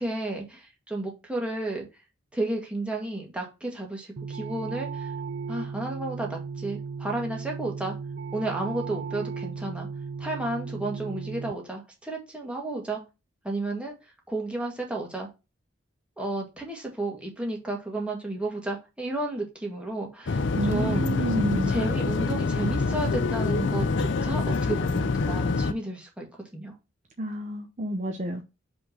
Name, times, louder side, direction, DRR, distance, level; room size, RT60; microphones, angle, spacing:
voice 1, 0.0-1.8 2.3-5.1 5.5-8.0 8.3-9.9 10.2-13.0 13.4-15.3 16.2-21.1 21.7-26.7, right 2 dB, 5° right, 1.8 m, -32 dB
sound 1, 4.2-11.5, right 5 dB, 55° right, 0.4 m, -36 dB
sound 2, 20.3-25.7, left 4 dB, 60° left, 0.5 m, -26 dB
voice 2, 20.6-21.7 27.2-28.4, right 1 dB, 35° right, 0.8 m, -29 dB
5.5 x 3.6 x 5.8 m
head